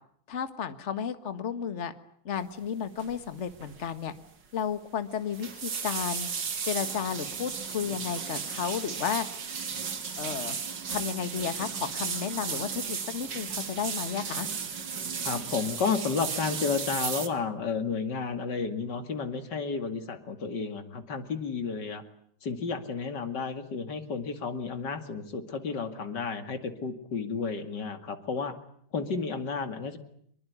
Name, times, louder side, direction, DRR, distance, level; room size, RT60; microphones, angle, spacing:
voice 1, 0.3-1.9 2.3-4.1 4.5-6.3 6.6-9.3 10.2-10.6 10.9-14.5, left 7 dB, 35° left, 10 dB, 1.7 m, -33 dB
sound 1, 3.0-3.2 3.5-3.8 4.1-4.2 5.1-17.3, right 6 dB, 60° right, 2.6 m, -35 dB
voice 2, 15.2-22.0 22.4-28.5 28.9-30.0, left 5 dB, 55° left, 8 dB, 2.9 m, -32 dB
25.0 x 22.5 x 9.7 m, 0.65 s
omnidirectional pair, 2.2 m